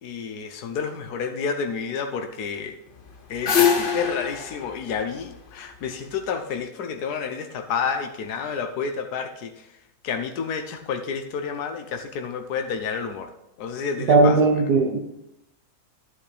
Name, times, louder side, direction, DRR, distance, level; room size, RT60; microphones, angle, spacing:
voice 1, 0.0-2.8 3.3-9.7 10.0-13.3 13.6-14.6, left 6 dB, 75° left, 6 dB, 1.4 m, -30 dB
sound 1, 3.0-6.1, left 7 dB, 40° left, 0.9 m, -24 dB
voice 2, 14.1-15.0, right 3 dB, 75° right, 0 dB, 1.6 m, -17 dB
11.5 x 9.4 x 3.3 m, 0.85 s
omnidirectional pair, 1.7 m